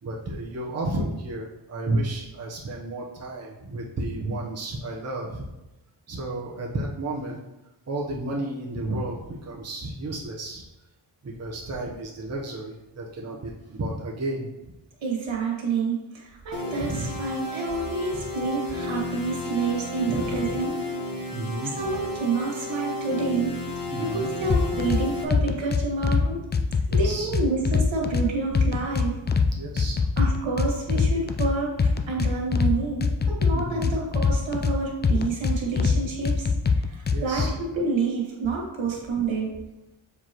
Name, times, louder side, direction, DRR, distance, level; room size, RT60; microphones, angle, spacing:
voice 1, 0.0-5.4 6.1-7.4 7.9-10.6 11.2-14.7 16.8-17.2 18.1-18.2 20.1-20.6 21.3-22.0 23.9-25.0 26.9-27.3 29.5-30.1 33.5-33.9 37.1-37.5, right 2 dB, 30° right, -3 dB, 1.0 m, -32 dB
voice 2, 15.0-20.8 21.8-23.6 24.0-26.4 26.9-29.1 30.2-39.6, right 4 dB, 75° right, -2 dB, 2.0 m, -28 dB
sound 1, 16.5-25.2, left 2 dB, 45° left, 1.4 m, -33 dB
sound 2, 24.5-25.0 25.3-26.2 26.5-28.2 28.5-29.5 29.8-31.5 31.8-32.7 33.0-34.7 35.0-36.0 36.2-37.5, left 5 dB, 25° left, 0.4 m, -22 dB
6.8 x 4.9 x 3.0 m, 0.99 s
cardioid pair, 95°, 47 cm